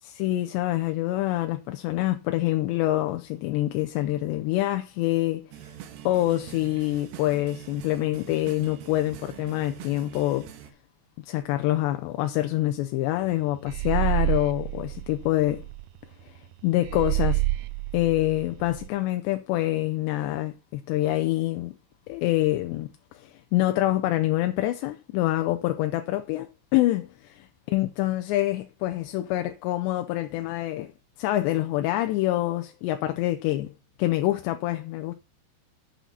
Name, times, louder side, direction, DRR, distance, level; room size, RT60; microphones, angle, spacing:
voice 1, 0.0-5.5 6.1-10.5 11.2-15.7 16.2-17.4 17.9-21.7 22.1-30.9 31.2-33.7 34.0-35.1, left 15 dB, 80° left, 2.8 m, -26 dB
sound 1, 5.5-10.7, right 10 dB, 70° right, 3.0 m, -44 dB
sound 2, 13.7-15.8 16.9-18.9, right 19 dB, 90° right, 2.2 m, -28 dB
8.4 x 7.3 x 5.5 m
omnidirectional pair, 5.2 m